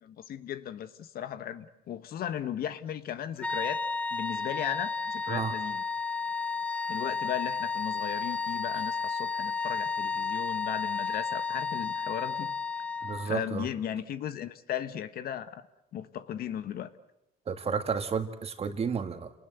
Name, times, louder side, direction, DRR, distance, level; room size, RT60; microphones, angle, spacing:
voice 1, 0.0-3.8 4.1-5.8 6.9-12.5 13.2-15.6 15.9-16.9, left 10 dB, 65° left, 12 dB, 1.4 m, -36 dB
sound 1, 3.4-13.4, left 5 dB, 10° left, 0.9 m, -32 dB
voice 2, 13.0-13.7 17.5-19.3, right 6 dB, 35° right, 8 dB, 2.1 m, -32 dB
29.0 x 19.5 x 8.1 m, 0.89 s
cardioid pair, 110°, 17 cm